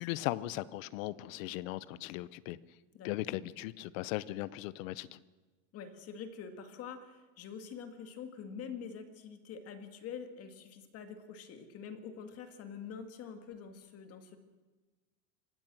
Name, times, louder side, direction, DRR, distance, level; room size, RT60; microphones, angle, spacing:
voice 1, 0.0-2.6 3.0-5.2, left 16 dB, 70° left, 18 dB, 0.9 m, -38 dB
voice 2, 5.7-14.4, left 6 dB, 35° left, 7 dB, 2.0 m, -46 dB
24.5 x 18.0 x 6.3 m, 1.3 s
supercardioid pair, 155°, 42 cm